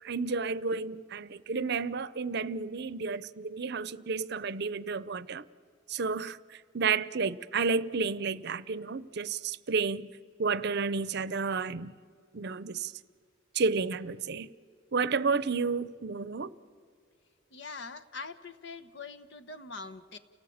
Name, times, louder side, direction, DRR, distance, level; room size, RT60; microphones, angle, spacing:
voice 1, 0.0-5.4 5.9-10.1 10.4-11.9 12.3-12.9 13.5-14.5 14.9-16.6, right 4 dB, 60° right, 18 dB, 0.7 m, -31 dB
voice 2, 17.5-20.2, left 4 dB, 65° left, 9 dB, 1.2 m, -43 dB
30.0 x 18.5 x 8.7 m, 2.2 s
head